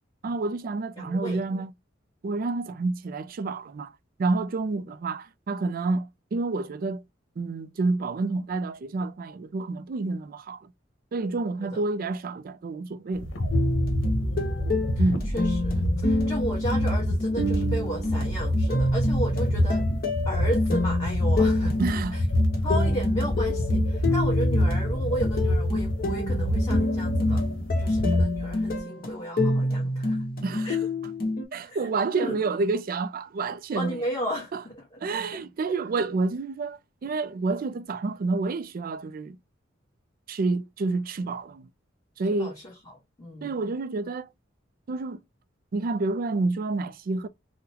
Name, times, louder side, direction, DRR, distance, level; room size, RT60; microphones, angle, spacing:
voice 1, 0.2-1.7 2.2-3.9 4.2-7.0 7.4-10.7 11.1-13.3 15.0-15.3 21.8-22.2 30.4-30.8 31.5-34.0 34.5-34.6 35.0-39.4 40.3-41.7 42.2-42.6 43.4-44.3 44.9-45.2 45.7-47.3, right 3 dB, 50° right, 0.4 m, -29 dB
voice 2, 1.0-1.4 11.6-11.8 14.2-14.9 15.3-19.9 20.2-21.8 22.1-22.2 22.6-27.4 27.8-30.2 30.6-30.8 31.6-31.8 32.1-32.4 33.7-35.0 35.3-35.4 42.4-43.5, equal, 20° left, 1.2 m, -34 dB
sound 1, 13.1-28.8, left 1 dB, 85° left, 0.9 m, -26 dB
sound 2, 13.5-31.4, left 1 dB, 50° left, 1.3 m, -28 dB
3.7 x 2.1 x 2.8 m
head